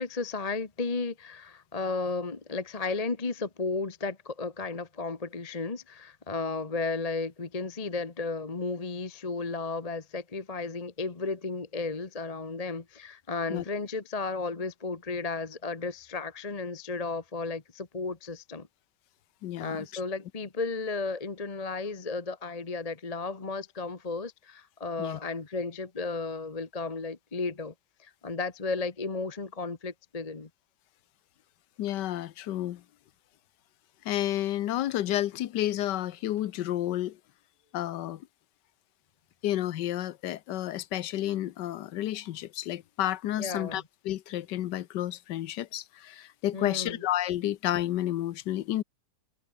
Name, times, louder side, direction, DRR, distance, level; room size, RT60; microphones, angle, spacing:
voice 1, 0.0-18.7 19.6-27.7 28.0-30.5 43.4-43.8 46.5-47.0, left 3 dB, 25° left, 1.2 m, -34 dB
voice 2, 19.4-19.8 25.0-25.2 31.8-32.8 34.0-37.2 37.7-38.3 39.4-48.8, left 13 dB, 90° left, 1.4 m, -31 dB
omnidirectional pair, 1.8 m